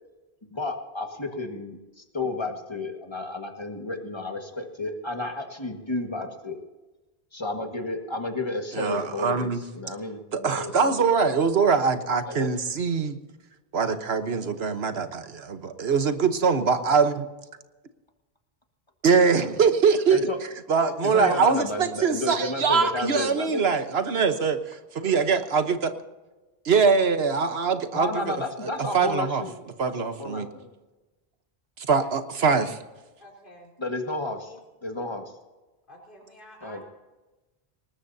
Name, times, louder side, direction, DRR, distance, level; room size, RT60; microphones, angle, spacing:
voice 1, 0.5-6.6 7.3-11.0 12.2-12.5 20.1-20.4 21.0-23.6 27.9-29.5 30.2-30.7 33.8-34.5 34.8-35.3 36.6-36.8, left 2 dB, 25° left, 4 dB, 1.7 m, -32 dB
voice 2, 8.7-9.6 10.3-13.2 13.7-17.3 19.0-24.6 25.0-25.9 26.6-29.4 29.8-30.5 31.8-32.8, right 5 dB, 80° right, 9 dB, 1.3 m, -23 dB
voice 3, 33.2-33.7 34.3-34.6 35.9-36.8, equal, 55° left, -1 dB, 4.0 m, -49 dB
19.5 x 19.5 x 2.8 m, 1.1 s
omnidirectional pair, 1.0 m